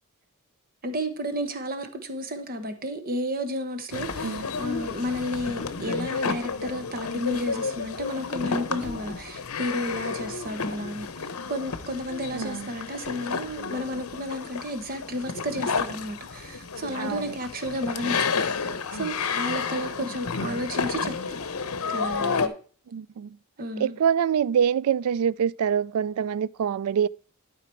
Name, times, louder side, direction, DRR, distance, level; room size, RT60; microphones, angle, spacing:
voice 1, 0.8-21.4 21.9-22.5 23.6-24.0, equal, 40° right, 1.1 m, -32 dB
sound 1, 3.9-22.5, left 5 dB, 70° left, 0.8 m, -31 dB
Door, 5.3-6.3 6.9-7.4 8.8-10.7, equal, 5° right, 1.2 m, -49 dB
voice 2, 12.3-12.7 17.0-17.4 20.4-20.6 22.9-23.4 23.8-27.1, right 8 dB, 75° right, 0.3 m, -25 dB
12.0 x 4.9 x 4.5 m
head